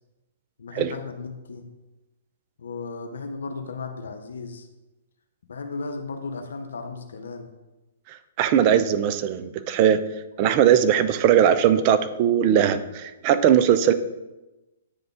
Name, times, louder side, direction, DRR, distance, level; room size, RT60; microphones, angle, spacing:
voice 1, 0.6-1.7 2.6-4.7 5.5-7.5, left 4 dB, 75° left, 5 dB, 0.7 m, -35 dB
voice 2, 8.1-10.0 10.4-13.9, right 9 dB, 40° right, 12 dB, 0.5 m, -19 dB
9.4 x 3.6 x 3.5 m, 1.0 s
hypercardioid pair, 125°, 0 cm